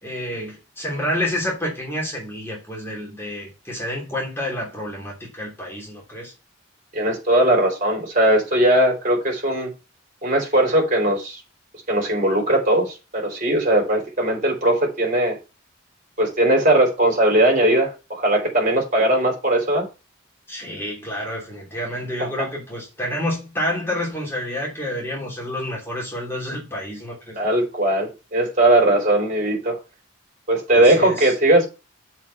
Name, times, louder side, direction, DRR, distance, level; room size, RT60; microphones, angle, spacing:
voice 1, 0.0-6.3 20.5-27.4 30.7-31.3, left 1 dB, 10° left, 3.1 m, -29 dB
voice 2, 6.9-9.7 10.2-11.4 11.9-15.4 16.2-19.9 22.2-22.5 27.3-29.8 30.5-31.7, right 1 dB, 40° right, 3.4 m, -19 dB
7.2 x 4.6 x 5.8 m
head